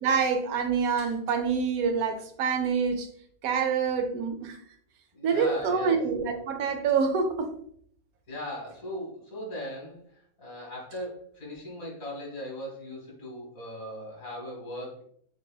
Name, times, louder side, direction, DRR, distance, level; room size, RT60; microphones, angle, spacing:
voice 1, 0.0-3.1 3.4-4.6 5.2-7.5, right 5 dB, 85° right, 6 dB, 1.1 m, -26 dB
voice 2, 5.1-6.0 8.3-10.0 10.4-15.0, left 1 dB, 75° left, -2 dB, 2.0 m, -38 dB
6.0 x 2.7 x 2.2 m, 0.62 s
omnidirectional pair, 1.5 m